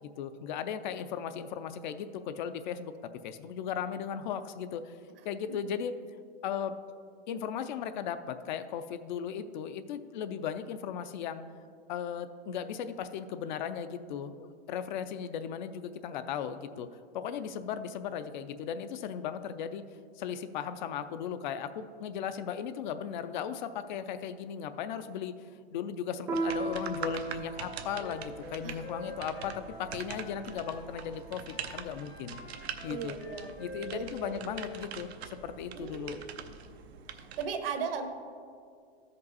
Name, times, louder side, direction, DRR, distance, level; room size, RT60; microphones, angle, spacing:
voice 1, 0.0-5.0 5.2-5.9 6.4-6.8 7.3-11.4 11.9-16.9 17.1-19.8 20.2-25.3 25.7-32.4 32.8-33.2 33.6-36.2, left 8 dB, 50° left, 11 dB, 0.5 m, -37 dB
Piano, 26.3-31.2, right 3 dB, 10° right, 0.5 m, -39 dB
sound 1, 26.3-37.5, right 7 dB, 90° right, 0.7 m, -44 dB
Wind instrument woodwind instrument, 28.0-31.2 31.5-34.9, left 3 dB, 80° left, 1.4 m, -47 dB
voice 2, 32.9-33.6 33.9-34.4 35.7-36.4 37.1-38.1, right 6 dB, 65° right, 6 dB, 1.1 m, -37 dB
13.0 x 5.3 x 4.1 m, 2.2 s
supercardioid pair, 150°, 31 cm